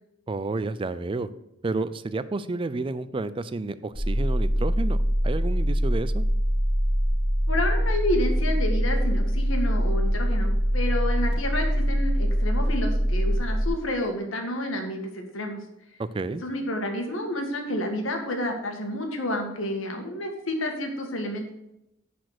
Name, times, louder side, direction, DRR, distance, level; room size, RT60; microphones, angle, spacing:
voice 1, 0.3-1.3 1.6-5.0 5.2-6.3 16.0-16.4, right 3 dB, 25° right, 14 dB, 0.4 m, -30 dB
sound 1, 3.9-13.7, equal, 25° left, 3.4 m, -23 dB
voice 2, 7.5-15.6 16.4-21.5, left 1 dB, 75° left, 3 dB, 1.6 m, -30 dB
10.0 x 4.3 x 6.5 m, 0.86 s
head